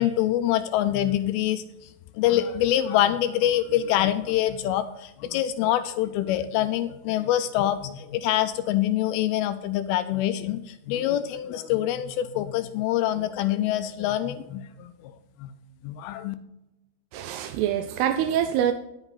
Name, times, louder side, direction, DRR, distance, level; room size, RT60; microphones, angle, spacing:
voice 1, 0.0-1.6 2.2-14.9 15.4-15.5 15.8-16.4, left 12 dB, 85° left, 2.3 m, -25 dB
voice 2, 17.1-18.7, right 10 dB, 85° right, 2.5 m, -25 dB
10.5 x 8.0 x 4.0 m
omnidirectional pair, 4.7 m